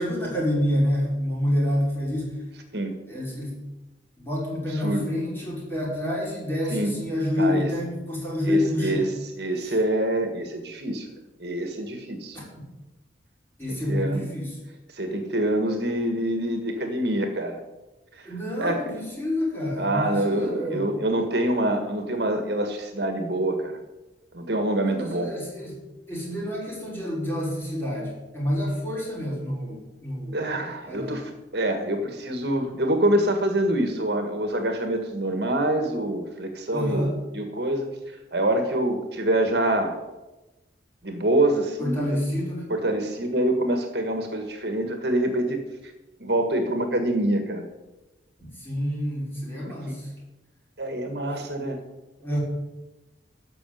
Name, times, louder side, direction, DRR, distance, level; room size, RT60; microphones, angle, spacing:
voice 1, 0.0-2.3 3.1-3.6 4.2-9.0 9.6-9.7 12.3-12.4 13.6-14.6 18.2-20.8 24.8-25.8 26.1-30.4 30.9-31.3 36.7-37.1 41.8-42.7 48.4-50.1 52.2-52.4, left 1 dB, 10° left, -5 dB, 5.4 m, -28 dB
voice 2, 4.7-5.1 6.7-6.9 7.4-7.7 8.4-9.0 9.4-11.1 11.4-12.4 13.7-14.2 14.9-17.6 18.6-18.9 19.8-23.8 24.3-25.3 30.3-37.9 38.3-40.0 41.0-42.0 42.7-45.6 46.2-47.7 49.6-50.0 50.8-51.8, right 1 dB, 65° right, 6 dB, 1.6 m, -25 dB
13.5 x 6.1 x 9.2 m, 1.1 s
head